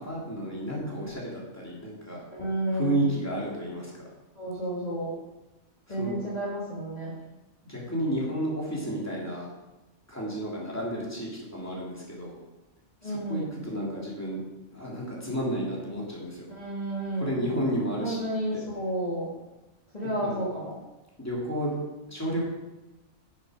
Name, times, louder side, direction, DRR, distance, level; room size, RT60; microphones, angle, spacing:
voice 1, 0.0-2.2 2.7-4.1 5.9-6.2 7.6-9.5 10.1-12.4 13.0-14.4 14.7-16.5 17.2-18.6 20.2-20.4 21.2-21.8 22.1-22.4, right 1 dB, 10° left, -5 dB, 3.1 m, -32 dB
voice 2, 2.3-3.1 4.4-5.1 5.9-7.1 13.0-13.4 16.5-17.4 18.0-19.3 19.9-20.7, right 1 dB, 35° left, -7 dB, 2.5 m, -31 dB
11.0 x 8.2 x 5.2 m, 1.0 s
omnidirectional pair, 1.3 m